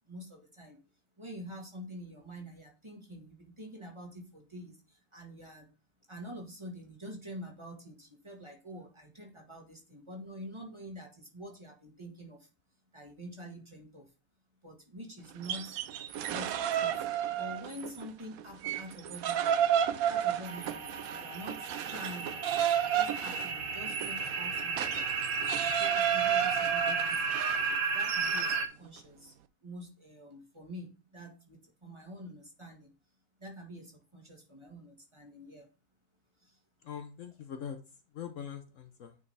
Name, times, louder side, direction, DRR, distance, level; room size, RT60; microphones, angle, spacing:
voice 1, 0.0-0.8 1.2-5.7 6.1-12.5 12.9-14.1 14.6-15.8 16.2-17.1 17.4-19.6 20.1-25.0 25.3-27.4 27.8-29.3 29.6-32.9 33.4-35.7 36.4-36.6, equal, 20° right, 1 dB, 1.6 m, -47 dB
sound 1, 15.3-18.1 18.4-28.7, right 10 dB, 75° right, 1.0 m, -32 dB
sound 2, 20.4-28.7, right 4 dB, 45° right, 0.8 m, -33 dB
voice 2, 36.8-37.8 38.1-39.2, left 8 dB, 65° left, 7 dB, 1.0 m, -42 dB
9.5 x 4.8 x 3.3 m, 0.32 s
omnidirectional pair, 1.6 m